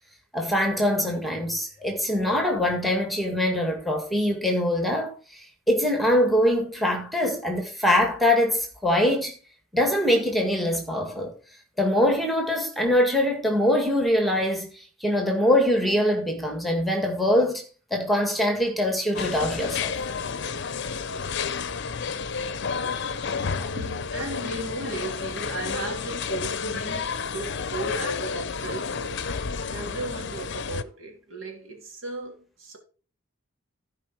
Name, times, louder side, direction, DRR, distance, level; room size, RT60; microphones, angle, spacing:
voice 1, 0.3-9.3 9.7-11.3 11.8-14.7 15.0-17.6 17.9-19.9 23.6-23.7, left 1 dB, ahead, 1.8 m, -23 dB
sound 1, 19.2-30.8, left 5 dB, 55° left, 0.7 m, -31 dB
voice 2, 23.3-29.3 29.7-32.8, right 2 dB, 70° right, 3.0 m, -36 dB
14.5 x 5.1 x 4.5 m
head